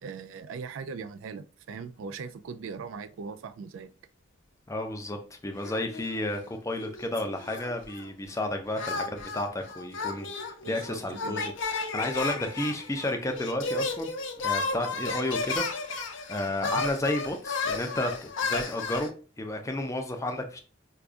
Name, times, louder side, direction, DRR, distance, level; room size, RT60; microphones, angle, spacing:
voice 1, 0.0-3.9 10.6-11.5 16.6-16.8, right 5 dB, 90° right, 0.3 m, -40 dB
voice 2, 4.7-14.1 14.4-20.6, left 1 dB, 15° left, 0.5 m, -32 dB
sound 1, 5.6-6.5 6.8-8.1 8.8-19.1, left 4 dB, 75° left, 0.6 m, -33 dB
4.8 x 2.3 x 2.5 m
head